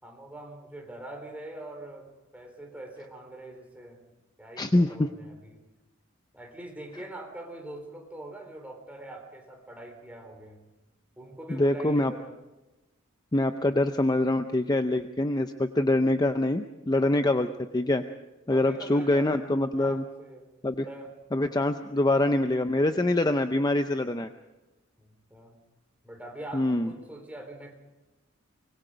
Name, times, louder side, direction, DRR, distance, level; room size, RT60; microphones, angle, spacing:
voice 1, 0.0-4.0 4.4-5.6 6.3-10.6 11.2-12.3 18.5-20.5 20.8-21.2 25.0-25.6 26.0-27.7, right 1 dB, 5° right, 2 dB, 4.0 m, -43 dB
voice 2, 4.6-5.1 11.5-12.1 13.3-18.0 18.5-20.0 20.6-20.9 21.3-24.3 26.5-26.9, left 1 dB, 20° left, 8 dB, 0.6 m, -25 dB
24.5 x 21.0 x 5.1 m, 1.1 s
head